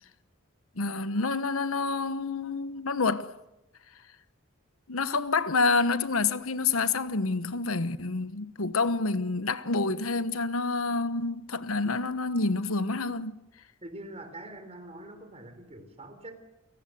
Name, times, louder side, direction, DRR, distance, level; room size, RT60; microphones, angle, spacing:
voice 1, 0.7-3.3 4.9-13.4, left 3 dB, 80° left, 1.1 m, -28 dB
voice 2, 13.8-16.4, right 1 dB, 30° right, 3.8 m, -44 dB
29.5 x 18.0 x 7.9 m
head